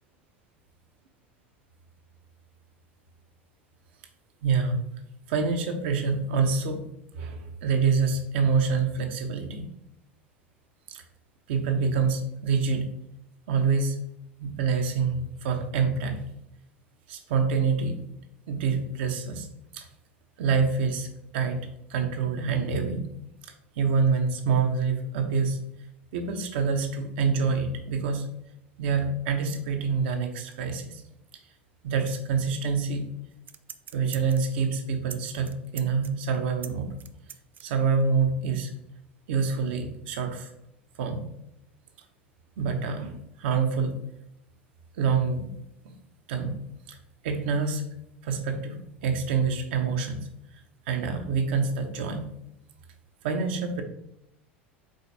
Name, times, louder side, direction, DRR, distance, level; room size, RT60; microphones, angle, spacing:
voice 1, 4.4-4.8 5.3-6.8 7.1-9.7 10.9-11.0 11.5-12.9 13.5-14.0 14.4-16.2 17.1-18.0 18.5-19.5 19.7-19.9 20.4-21.6 21.9-23.1 23.8-25.6 26.1-28.3 28.8-31.0 31.8-33.0 33.9-36.9 37.6-38.7 39.3-40.5 41.0-41.2 42.6-44.0 45.0-45.5 46.3-46.6 46.9-47.0 47.2-47.8 48.2-50.2 50.9-52.3 53.2-53.8, right 5 dB, 60° right, 5 dB, 0.8 m, -26 dB
sound 1, 33.3-34.6 35.1-35.2 35.4-37.6 38.0-38.1, right 8 dB, 30° right, 0.3 m, -42 dB
4.9 x 4.0 x 2.7 m, 0.79 s
figure-of-eight pair, 80°, 6 cm